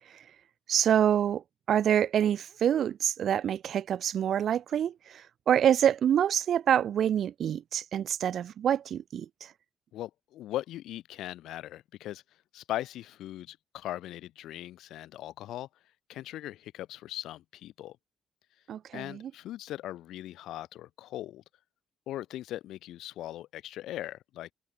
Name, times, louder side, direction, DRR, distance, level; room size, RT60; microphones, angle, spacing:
voice 1, 0.7-9.5 18.7-19.3, right 9 dB, 65° right, 1.6 m, -26 dB
voice 2, 9.9-12.2 12.5-15.7 16.1-18.0 18.9-21.4 22.1-24.5, left 14 dB, 85° left, 3.7 m, -39 dB
cardioid pair, 90°, 0 cm